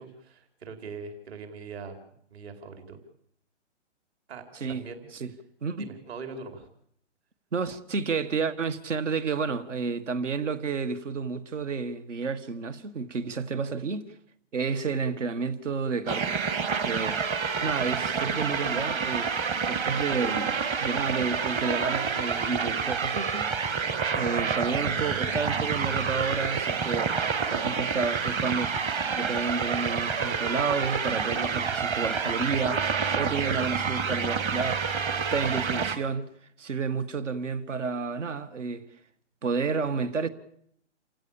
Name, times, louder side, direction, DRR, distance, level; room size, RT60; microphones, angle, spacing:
voice 1, 0.0-2.0 2.3-3.0 4.3-5.1 5.8-6.7 17.5-18.4, right 4 dB, 60° right, 4.7 m, -42 dB
voice 2, 4.5-4.9 5.1-5.3 5.6-5.9 7.5-14.1 14.5-16.4 16.8-17.2 17.6-19.3 19.7-23.5 24.1-27.1 27.5-28.7 29.2-34.8 35.1-36.3 36.6-38.8 39.4-40.3, right 5 dB, 80° right, 1.9 m, -30 dB
sound 1, 16.1-36.0, right 5 dB, 15° right, 0.9 m, -28 dB
29.0 x 16.0 x 7.3 m
hypercardioid pair, 150°, 36 cm